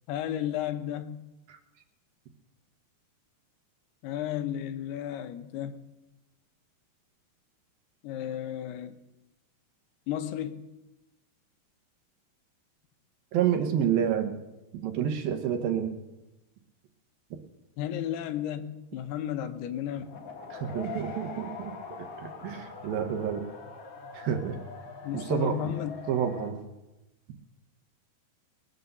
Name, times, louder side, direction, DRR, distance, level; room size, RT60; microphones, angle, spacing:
voice 1, 0.1-1.2 4.0-5.8 8.0-9.0 10.1-10.6 17.8-20.1 25.0-26.1, left 10 dB, 80° left, 9 dB, 2.8 m, -33 dB
voice 2, 13.3-14.3 14.8-15.9 20.5-23.4 24.1-24.6 25.1-25.6 26.1-26.6, right 9 dB, 70° right, 6 dB, 2.6 m, -29 dB
sound 1, 20.0-26.5, left 4 dB, 45° left, 2.3 m, -43 dB
20.5 x 8.0 x 6.8 m, 1.0 s
omnidirectional pair, 4.7 m